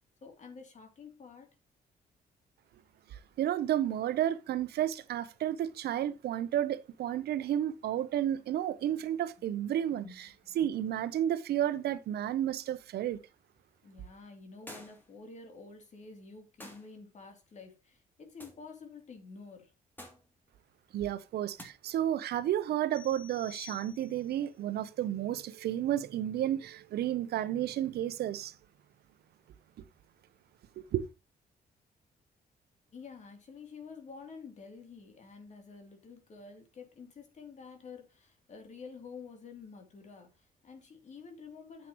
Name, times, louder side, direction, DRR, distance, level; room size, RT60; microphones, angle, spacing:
voice 1, 0.2-1.5 9.4-9.5 9.9-10.2 10.5-10.7 13.8-19.7 32.9-41.9, left 5 dB, 50° left, 3.1 m, -49 dB
voice 2, 3.1-10.3 10.5-13.2 20.9-28.5 30.8-31.1, right 11 dB, 80° right, 0.8 m, -32 dB
sound 1, 14.7-15.1 16.6-16.9 18.4-18.6 20.0-20.3 21.6-21.7, left 1 dB, 10° left, 2.8 m, -48 dB
sound 2, 22.9-24.4, left 7 dB, 65° left, 4.8 m, -51 dB
9.6 x 7.5 x 3.1 m
cardioid pair, 120°, 16 cm